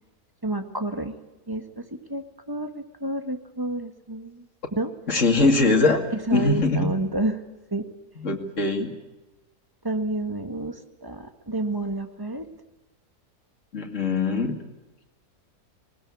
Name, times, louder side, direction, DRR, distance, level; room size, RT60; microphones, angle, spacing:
voice 1, 0.4-1.1 1.5-1.8 2.1-4.4 4.8-4.9 6.1-7.4 7.7-7.8 9.8-12.4, right 2 dB, 15° right, 8 dB, 1.7 m, -29 dB
voice 2, 5.1-6.0 6.3-6.9 8.2-8.9 13.7-14.6, left 3 dB, 50° left, 3 dB, 2.9 m, -22 dB
20.5 x 20.0 x 8.6 m, 1.1 s
omnidirectional pair, 1.6 m